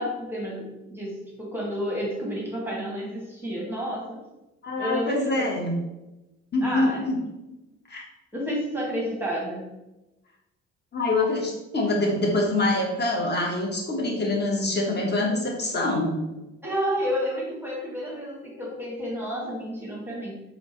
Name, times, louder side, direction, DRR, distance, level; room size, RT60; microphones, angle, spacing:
voice 1, 0.0-4.2 4.8-5.5 6.6-7.0 8.3-9.7 16.6-20.4, equal, 5° right, -4 dB, 1.5 m, -30 dB
voice 2, 4.6-5.7 6.5-7.2 7.9-8.0 10.9-16.2, left 2 dB, 30° left, 0 dB, 1.2 m, -25 dB
4.3 x 3.6 x 3.0 m, 0.99 s
figure-of-eight pair, 45°, 36 cm